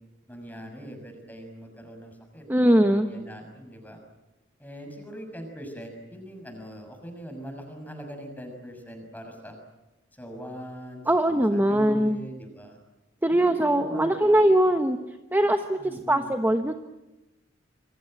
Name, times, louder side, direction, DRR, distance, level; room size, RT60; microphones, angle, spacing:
voice 1, 0.3-4.0 4.6-9.6 10.1-12.8 13.3-14.6 15.8-16.3, equal, 10° left, 5 dB, 6.5 m, -42 dB
voice 2, 2.5-3.1 11.1-12.2 13.2-15.0 15.3-16.7, right 1 dB, 10° right, 6 dB, 1.2 m, -21 dB
27.5 x 23.5 x 7.9 m, 1.0 s
head